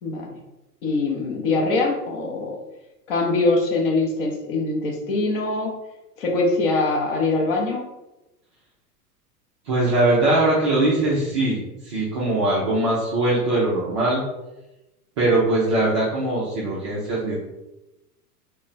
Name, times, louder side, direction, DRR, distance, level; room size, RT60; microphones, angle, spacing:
voice 1, 0.0-0.4 0.8-2.6 3.1-5.7 6.2-7.9, left 3 dB, 35° left, 1 dB, 0.7 m, -23 dB
voice 2, 9.7-14.2 15.2-17.4, right 2 dB, 20° right, -6 dB, 0.4 m, -21 dB
2.9 x 2.2 x 3.9 m, 0.98 s
figure-of-eight pair, 95°, 47 cm